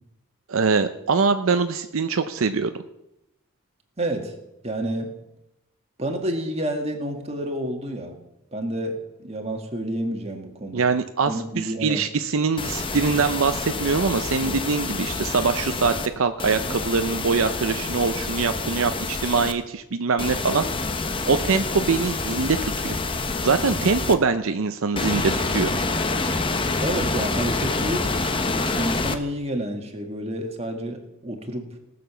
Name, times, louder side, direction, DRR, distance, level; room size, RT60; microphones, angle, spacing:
voice 1, 0.5-2.7 10.7-20.6 21.3-22.9 23.4-25.7, right 4 dB, 70° right, 9 dB, 0.6 m, -23 dB
voice 2, 4.0-4.3 4.6-5.2 6.0-8.2 8.5-10.9 11.2-12.0 14.4-14.5 26.8-28.2 28.8-31.7, right 1 dB, 30° right, 3 dB, 1.8 m, -29 dB
sound 1, 12.6-16.1 16.4-19.5 20.2-24.1 25.0-29.2, left 3 dB, 25° left, 0.7 m, -27 dB
18.0 x 6.8 x 6.9 m, 0.88 s
head